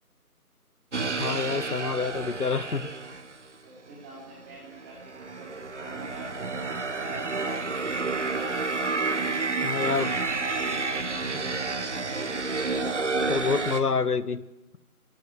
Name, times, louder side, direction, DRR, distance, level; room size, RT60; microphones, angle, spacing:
sound 1, 0.9-3.4 4.2-13.8, right 3 dB, 50° right, 1.6 m, -30 dB
voice 1, 1.2-2.9 9.6-10.1 13.3-14.4, left 5 dB, 80° left, 17 dB, 1.3 m, -27 dB
voice 2, 3.6-6.6 8.6-10.2, right 2 dB, 10° right, -5 dB, 3.8 m, -48 dB
29.0 x 14.5 x 7.9 m, 0.98 s
figure-of-eight pair, 170°, 45 cm